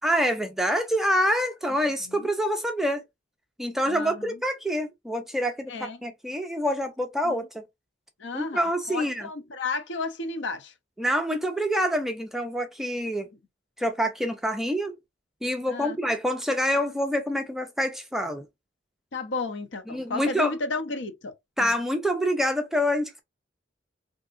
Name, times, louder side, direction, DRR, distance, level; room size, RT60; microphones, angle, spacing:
voice 1, 0.0-3.0 3.6-7.6 8.3-9.3 11.0-13.3 13.8-15.0 15.4-18.5 19.9-20.5 21.6-23.2, equal, ahead, 0.3 m, -26 dB
voice 2, 3.9-4.4 5.7-6.0 7.2-7.5 8.2-10.7 15.7-16.0 19.1-21.3 21.6-21.8, left 3 dB, 70° left, 0.6 m, -33 dB
3.5 x 2.7 x 2.4 m
head